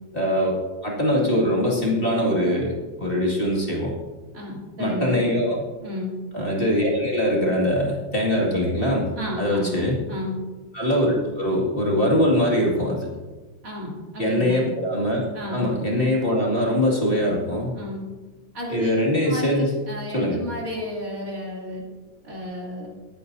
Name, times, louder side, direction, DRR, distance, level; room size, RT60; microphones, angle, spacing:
voice 1, 0.1-2.7 3.0-4.0 4.8-5.6 6.3-9.1 9.4-10.0 10.7-13.1 14.2-15.2 15.5-17.7 18.7-19.7 20.1-20.4, equal, 25° left, -3 dB, 2.3 m, -22 dB
voice 2, 4.3-5.2 5.8-6.1 9.2-9.8 10.1-10.4 13.6-14.7 15.3-15.7 17.7-18.0 18.5-18.9 19.2-21.8 22.2-22.9, left 1 dB, 45° right, -4 dB, 3.4 m, -32 dB
21.0 x 9.3 x 2.7 m, 1.3 s
omnidirectional pair, 2.2 m